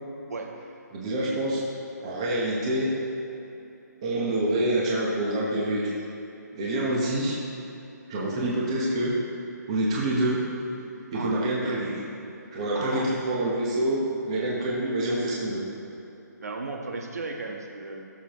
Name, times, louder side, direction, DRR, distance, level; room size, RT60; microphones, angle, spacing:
voice 1, 0.9-1.7 2.0-2.9 4.0-5.9 6.5-7.4 8.1-9.2 9.7-10.5 11.1-12.0 12.5-15.7, right 1 dB, 15° right, -5 dB, 1.2 m, -26 dB
voice 2, 12.7-13.1 16.4-18.0, right 3 dB, 60° right, 1 dB, 1.4 m, -35 dB
17.5 x 7.0 x 3.1 m, 3.0 s
hypercardioid pair, 180°, 10 cm